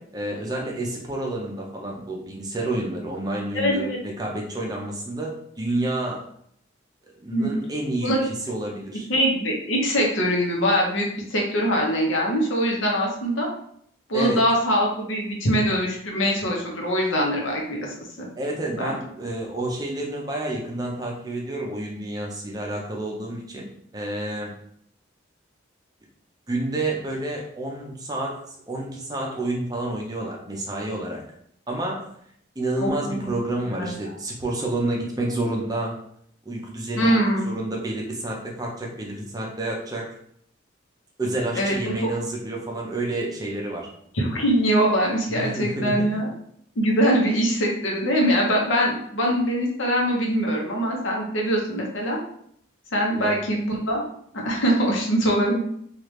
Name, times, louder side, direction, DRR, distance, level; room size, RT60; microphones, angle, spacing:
voice 1, 0.0-6.3 7.2-9.1 14.1-14.4 18.4-24.5 26.5-31.2 31.7-32.1 32.6-36.0 36.5-40.1 41.2-43.9 45.3-46.1 53.2-53.4, right 1 dB, 20° right, -1 dB, 0.5 m, -29 dB
voice 2, 3.5-4.0 7.3-7.5 8.0-8.3 9.1-13.5 14.1-17.8 18.2-18.3 18.7-18.9 32.8-33.3 33.6-33.9 37.0-37.5 41.5-42.1 44.1-46.3 46.8-52.2 52.9-54.0 54.3-55.6, equal, 80° left, -1 dB, 0.8 m, -23 dB
3.2 x 2.4 x 3.1 m, 0.67 s
head